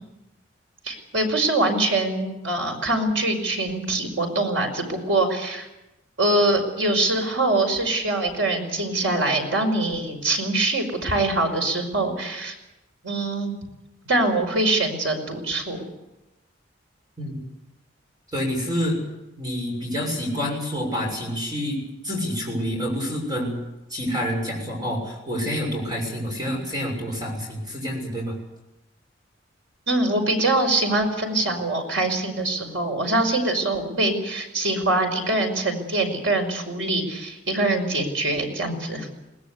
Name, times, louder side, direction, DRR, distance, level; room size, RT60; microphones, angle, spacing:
voice 1, 0.8-5.7 6.2-12.5 13.0-13.5 14.1-15.8 29.9-39.1, right 2 dB, 75° right, 4 dB, 5.5 m, -23 dB
voice 2, 18.3-19.0 19.4-23.5 23.9-28.4, equal, 20° right, 0 dB, 6.7 m, -28 dB
21.5 x 19.5 x 8.4 m, 0.96 s
head